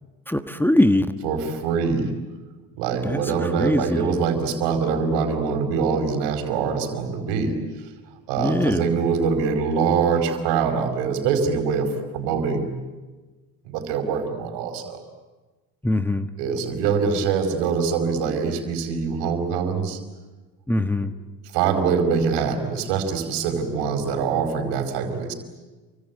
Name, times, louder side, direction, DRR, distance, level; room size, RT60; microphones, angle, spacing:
voice 1, 0.3-1.2 3.0-4.2 8.4-8.9 15.8-16.3 20.7-21.1, left 1 dB, 5° left, 8 dB, 1.4 m, -22 dB
voice 2, 1.2-2.1 2.8-7.5 8.3-12.7 13.6-15.0 16.4-20.0 21.5-25.3, right 5 dB, 70° right, 7 dB, 5.0 m, -24 dB
28.5 x 24.5 x 8.4 m, 1.3 s
hypercardioid pair, 70°, 43 cm